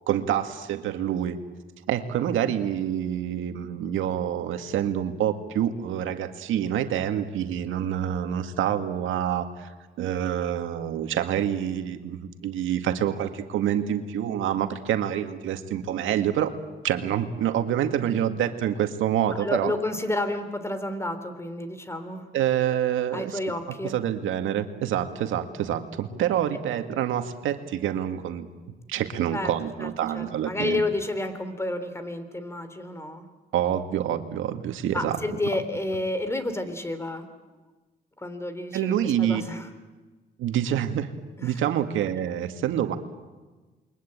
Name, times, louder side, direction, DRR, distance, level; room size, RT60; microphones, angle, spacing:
voice 1, 0.1-1.4 1.9-9.7 10.0-16.5 16.8-19.7 22.3-23.4 23.9-28.5 28.9-30.8 33.5-35.2 38.7-39.4 40.4-41.1 41.4-43.0, right 10 dB, 85° right, 7 dB, 2.0 m, -27 dB
voice 2, 19.4-22.3 23.1-24.0 29.3-29.5 29.8-33.3 34.9-37.6 38.2-39.7 41.4-41.6, left 2 dB, 15° left, 10 dB, 3.6 m, -30 dB
28.5 x 23.0 x 8.9 m, 1.3 s
cardioid pair, 90°, 20 cm